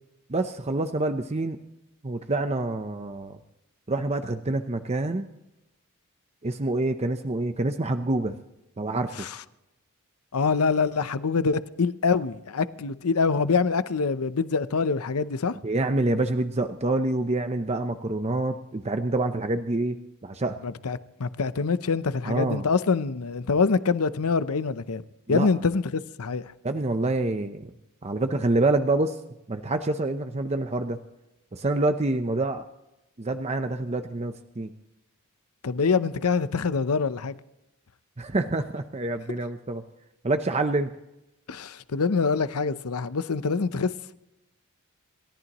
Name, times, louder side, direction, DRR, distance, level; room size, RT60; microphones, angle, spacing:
voice 1, 0.3-1.6 2.0-3.4 3.9-5.3 6.4-8.4 8.8-9.2 15.6-20.0 20.2-20.6 22.2-22.6 25.3-25.5 26.6-27.7 28.0-29.2 29.5-31.0 31.5-32.6 33.2-34.7 38.2-39.8 40.2-40.9, right 2 dB, 30° right, 0.7 m, -27 dB
voice 2, 10.3-15.5 20.6-25.0 25.3-26.4 35.6-37.3 41.5-44.1, left 4 dB, 80° left, 0.7 m, -25 dB
28.0 x 14.0 x 3.0 m
head